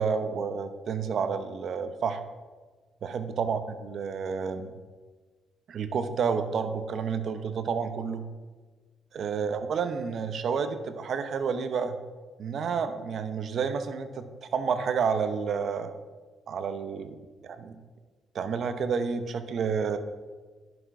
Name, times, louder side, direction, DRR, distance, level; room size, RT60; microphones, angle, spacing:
voice 1, 0.0-2.2 3.0-4.7 5.7-8.2 9.1-12.0 12.4-15.9 16.5-17.8 18.3-20.0, right 6 dB, 60° right, 10 dB, 0.8 m, -30 dB
10.5 x 6.2 x 4.8 m, 1.4 s
cardioid pair, 90°, 0 cm